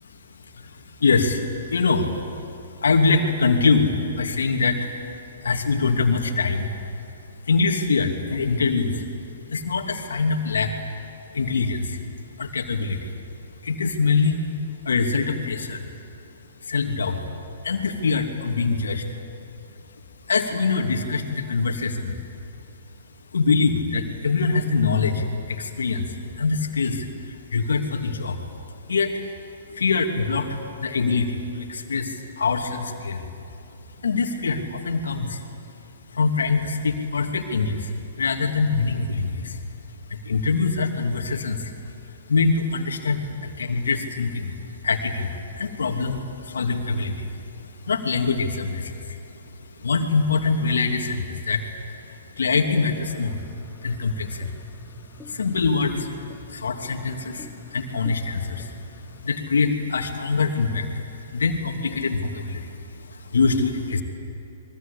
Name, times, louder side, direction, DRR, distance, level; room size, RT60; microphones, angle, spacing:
voice 1, 0.3-2.3 2.6-4.9 5.4-6.7 7.5-9.1 9.5-10.7 11.3-12.0 12.4-13.1 13.6-14.4 14.8-15.9 16.6-17.2 17.6-19.2 20.2-22.2 23.3-28.5 28.8-33.3 34.0-35.4 36.1-39.6 40.1-47.5 47.8-49.4 49.8-53.4 53.8-54.6 55.3-64.0, left 4 dB, 75° left, 4 dB, 2.8 m, -24 dB
sound 1, 53.0-59.4, left 3 dB, 10° left, 2.1 m, -47 dB
26.5 x 23.0 x 8.7 m, 2.8 s
hypercardioid pair, 125°, 0 cm